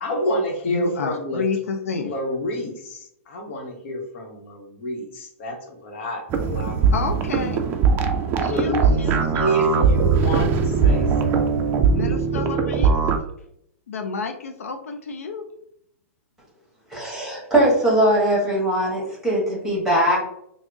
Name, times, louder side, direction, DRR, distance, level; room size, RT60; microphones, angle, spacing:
voice 1, 0.0-1.4 2.0-6.9 8.4-9.1 9.4-11.7, equal, 60° left, 2 dB, 0.9 m, -28 dB
voice 2, 0.7-2.1 6.9-7.7 8.4-10.0 11.9-13.0 13.9-15.4, left 4 dB, 90° left, 5 dB, 0.4 m, -30 dB
sound 1, 6.3-13.2, right 5 dB, 30° right, 0.4 m, -20 dB
voice 3, 16.9-20.3, right 1 dB, 5° right, -4 dB, 1.4 m, -20 dB
3.5 x 2.0 x 3.5 m, 0.74 s
hypercardioid pair, 140°, 8 cm